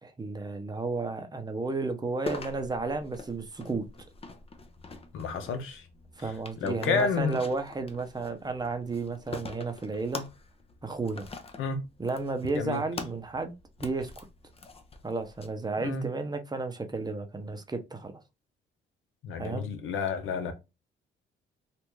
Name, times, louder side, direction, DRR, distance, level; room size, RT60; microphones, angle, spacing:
voice 1, 0.0-3.9 6.2-10.3 10.8-11.3 12.0-13.5 13.8-14.3 15.0-18.1 19.4-19.6, right 3 dB, 20° right, 0.7 m, -33 dB
sound 1, 2.3-15.5, left 3 dB, 30° left, 0.6 m, -44 dB
voice 2, 5.1-5.8 6.6-7.4 11.6-11.8 12.5-12.8 15.8-16.0 19.2-20.5, left 5 dB, 85° left, 0.8 m, -30 dB
3.3 x 2.5 x 3.1 m
cardioid pair, 90°, 20 cm